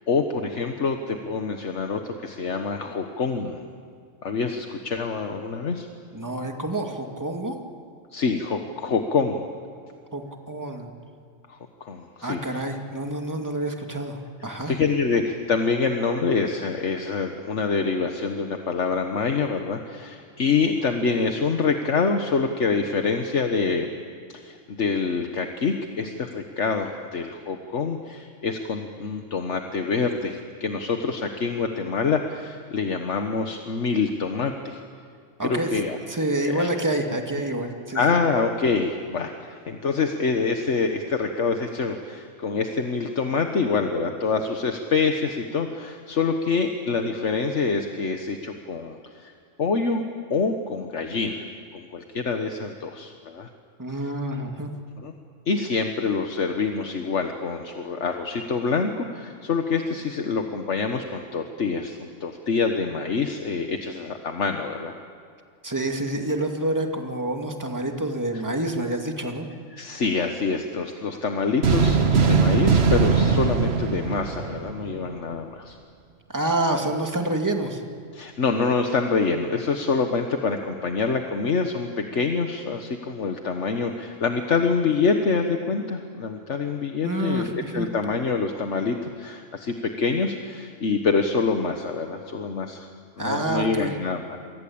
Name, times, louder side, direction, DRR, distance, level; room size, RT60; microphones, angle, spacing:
voice 1, 0.1-3.6 4.2-5.9 8.1-9.5 11.5-12.6 14.7-23.9 24.3-34.8 35.4-36.0 36.4-36.7 37.9-49.3 49.6-50.0 50.3-51.4 51.7-53.5 55.0-55.1 55.5-64.9 69.7-75.8 78.1-92.9 93.2-94.4, left 4 dB, 70° left, 5 dB, 1.6 m, -26 dB
voice 2, 6.1-7.6 10.1-10.2 10.5-10.9 12.2-14.7 35.4-35.7 36.1-38.0 53.8-54.7 65.6-69.5 76.3-77.8 87.0-87.9 93.2-93.9, right 1 dB, 15° right, 3 dB, 2.3 m, -27 dB
sound 1, 71.6-75.1, right 5 dB, 55° right, 1.6 m, -20 dB
28.5 x 23.5 x 8.7 m, 2.2 s
omnidirectional pair, 1.3 m